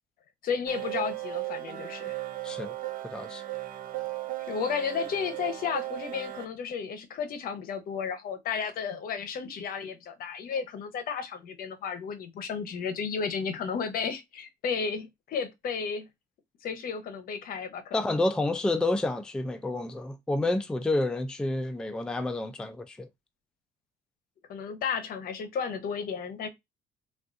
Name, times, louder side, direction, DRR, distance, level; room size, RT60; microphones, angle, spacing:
voice 1, 0.4-2.2 4.5-16.1 16.6-18.0 24.5-26.5, left 6 dB, 60° left, 0.8 m, -33 dB
sound 1, 0.7-6.5, right 17 dB, 55° right, 0.6 m, -36 dB
voice 2, 2.4-2.7 3.0-3.4 17.9-23.1, left 2 dB, 5° left, 0.4 m, -29 dB
3.6 x 2.4 x 2.5 m
cardioid pair, 110°, 17 cm